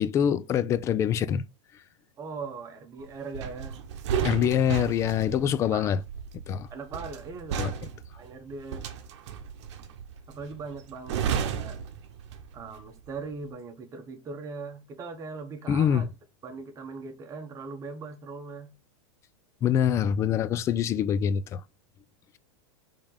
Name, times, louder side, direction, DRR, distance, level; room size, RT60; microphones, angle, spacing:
voice 1, 0.0-1.4 4.2-6.0 6.5-6.7 7.6-7.7 15.7-16.1 19.6-21.6, left 9 dB, 20° left, 0.3 m, -25 dB
voice 2, 2.2-3.8 5.7-6.0 6.7-7.6 8.2-8.9 10.3-11.8 12.5-16.0 16.4-18.7, right 4 dB, 20° right, 1.0 m, -40 dB
sound 1, 3.3-12.7 13.0-13.3, right 8 dB, 60° right, 0.9 m, -33 dB
5.1 x 3.6 x 5.2 m
supercardioid pair, 150°, 16 cm